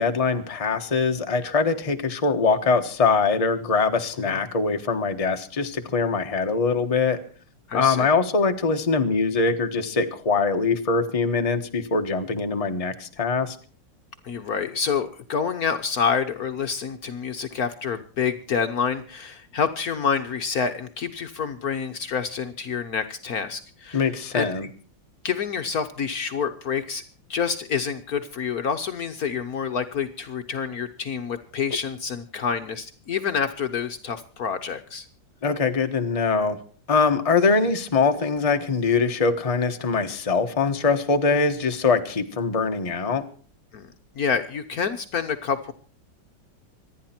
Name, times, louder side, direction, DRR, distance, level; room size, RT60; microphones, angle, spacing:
voice 1, 0.0-7.2 7.7-13.6 23.9-24.7 35.4-36.6 36.9-43.2, left 4 dB, 20° left, 5 dB, 1.1 m, -23 dB
voice 2, 7.7-8.1 14.2-24.7 25.2-27.0 27.3-35.1 43.7-45.7, left 6 dB, 55° left, 7 dB, 1.3 m, -28 dB
26.0 x 10.0 x 4.4 m, 0.42 s
omnidirectional pair, 2.0 m